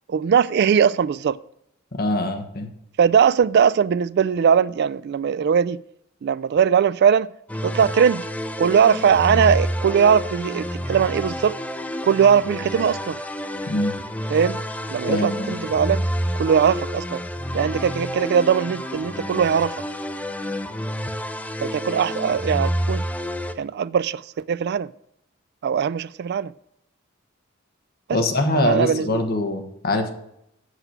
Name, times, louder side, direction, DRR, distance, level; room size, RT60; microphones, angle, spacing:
voice 1, 0.1-1.4 3.0-5.8 6.2-7.3 7.6-8.3 8.6-11.6 12.0-13.2 14.3-14.6 14.9-16.0 16.4-17.2 17.5-19.8 21.6-23.0 23.6-24.9 25.6-26.5 28.1-28.2 28.5-29.2, right 7 dB, 55° right, 0.3 m, -20 dB
voice 2, 2.0-2.7 13.7-13.9 15.1-15.5 28.1-30.1, left 1 dB, 50° left, 1.3 m, -23 dB
sound 1, 7.5-23.5, equal, 5° left, 0.5 m, -29 dB
8.0 x 7.9 x 5.9 m
head